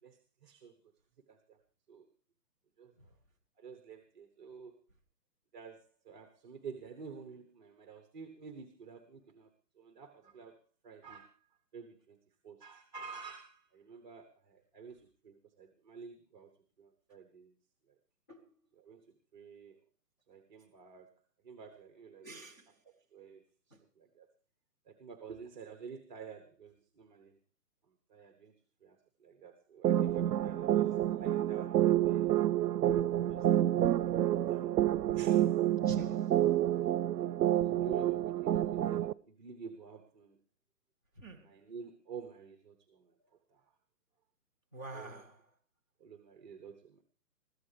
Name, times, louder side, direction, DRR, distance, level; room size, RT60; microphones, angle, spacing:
voice 1, 0.0-0.8 1.3-1.6 1.9-2.1 2.8-3.1 3.6-4.7 5.5-11.4 11.7-12.2 12.4-16.5 16.8-17.5 18.8-19.8 20.3-21.1 21.4-22.3 22.8-23.4 24.0-24.3 24.9-27.3 27.9-28.5 28.8-32.2 32.9-33.7 34.1-34.8 35.1-35.6 36.8-40.4 41.4-43.1 43.5-43.6 44.9-45.2 46.0-47.0, right 5 dB, 30° right, 1.2 m, -49 dB
voice 2, 22.2-22.7 23.7-23.8 35.8-36.4 41.2-41.5 44.7-45.4, right 2 dB, 10° left, 0.7 m, -47 dB
sound 1, 29.8-39.1, right 12 dB, 90° right, 0.6 m, -29 dB
21.0 x 15.5 x 3.4 m
hypercardioid pair, 165°, 49 cm